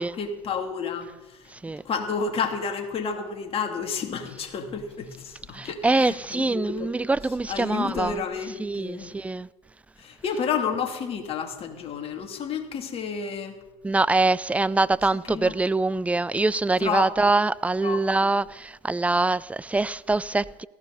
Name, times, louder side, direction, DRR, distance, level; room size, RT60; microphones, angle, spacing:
voice 1, 0.0-1.5 1.8-6.9 7.5-9.1 10.0-13.6 15.3-15.5 16.8-17.1 17.8-18.3, left 6 dB, 45° left, 2.8 m, -31 dB
voice 2, 5.5-8.2 8.6-9.5 13.8-20.7, right 3 dB, 10° right, 0.5 m, -24 dB
18.5 x 14.5 x 4.1 m
hypercardioid pair, 70°, 14 cm